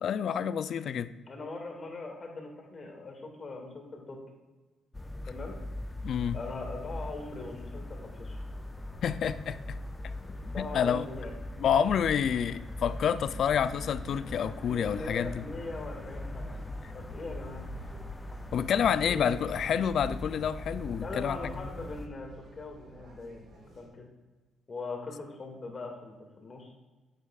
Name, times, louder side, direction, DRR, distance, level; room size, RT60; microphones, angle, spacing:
voice 1, 0.0-1.1 6.0-6.4 9.0-9.8 10.6-11.1 11.6-15.4 18.5-21.5, left 8 dB, 65° left, 0.4 m, -28 dB
voice 2, 1.3-4.2 5.3-5.6 6.3-8.4 10.4-11.3 14.6-16.6 16.9-17.7 19.0-19.3 21.0-24.1 24.7-26.7, left 3 dB, 40° left, 2.0 m, -41 dB
sound 1, 4.9-22.1, left 1 dB, 15° left, 0.6 m, -41 dB
sound 2, 6.3-23.9, right 2 dB, 65° right, 2.0 m, -51 dB
9.7 x 8.1 x 2.4 m
cardioid pair, 90°, 0 cm